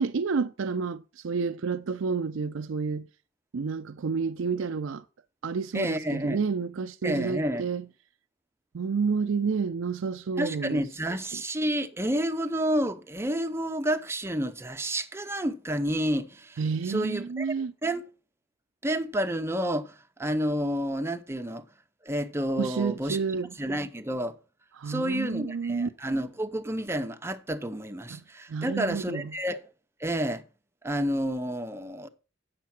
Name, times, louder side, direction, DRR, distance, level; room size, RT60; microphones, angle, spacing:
voice 1, 0.0-3.1 3.5-5.0 5.4-7.9 8.7-10.8 16.6-17.7 22.6-23.5 24.8-25.9 28.1-28.2 28.5-29.3, right 5 dB, 80° right, 0.5 m, -30 dB
voice 2, 5.7-6.4 7.0-7.7 10.4-16.6 16.8-18.0 18.8-21.6 22.0-23.2 23.6-24.4 24.9-29.6 30.0-30.4 30.8-32.1, equal, 15° right, 0.7 m, -30 dB
8.4 x 6.7 x 5.8 m
head